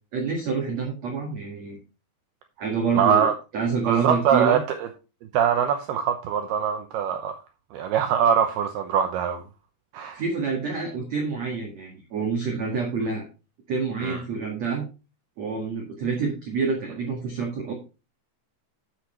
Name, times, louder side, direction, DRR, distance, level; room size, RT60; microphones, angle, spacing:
voice 1, 0.1-1.8 2.6-3.3 3.5-4.6 10.1-13.2 13.7-14.9 15.4-17.7, right 4 dB, 50° right, 2.4 m, -27 dB
voice 2, 3.0-3.3 3.8-4.9 5.3-7.4 7.7-9.4 9.9-10.2 14.0-14.2, right 8 dB, 75° right, 2.5 m, -23 dB
10.5 x 8.1 x 3.2 m
omnidirectional pair, 5.3 m